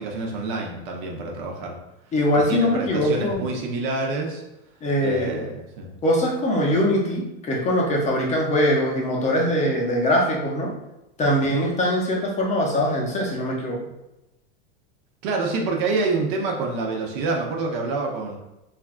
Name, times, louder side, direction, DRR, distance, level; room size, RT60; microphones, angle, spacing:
voice 1, 0.0-1.8 2.3-4.4 5.0-5.9 11.4-11.6 15.2-18.4, right 3 dB, 55° right, 0 dB, 0.8 m, -27 dB
voice 2, 2.1-3.5 4.8-5.4 6.0-10.7 11.2-13.8, equal, 25° left, -1 dB, 0.6 m, -22 dB
3.3 x 2.4 x 2.4 m, 0.96 s
supercardioid pair, 120°, 30 cm